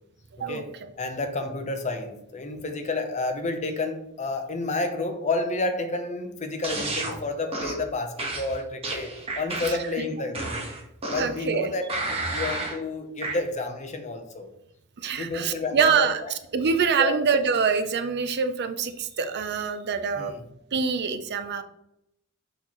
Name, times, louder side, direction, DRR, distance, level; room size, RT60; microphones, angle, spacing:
voice 1, 1.0-10.5 11.1-11.8 12.1-14.5 15.2-16.3 16.9-17.2 20.2-20.4, left 3 dB, 35° left, 6 dB, 0.9 m, -30 dB
sound 1, 6.6-7.1 7.5-7.8 8.2-9.9 10.3-11.4 11.9-12.8 13.2-13.4, right 2 dB, 30° right, 1.5 m, -31 dB
voice 2, 11.2-11.7 15.0-16.2 16.5-20.3 20.7-21.6, right 6 dB, 50° right, 9 dB, 0.6 m, -25 dB
6.5 x 5.8 x 3.1 m, 0.80 s
head